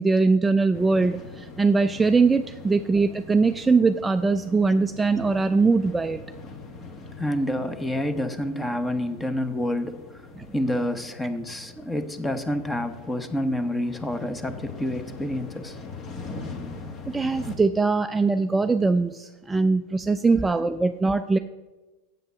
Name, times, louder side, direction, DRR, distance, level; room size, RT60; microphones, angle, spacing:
voice 1, 0.0-6.2 17.1-21.4, right 4 dB, 10° right, 8 dB, 0.4 m, -21 dB
sound 1, 0.7-17.6, left 3 dB, 35° left, 1.5 m, -42 dB
voice 2, 7.2-10.2 10.5-15.8, left 1 dB, 10° left, 10 dB, 0.9 m, -28 dB
7.8 x 7.8 x 6.9 m, 1.2 s
hypercardioid pair, 110°, 0 cm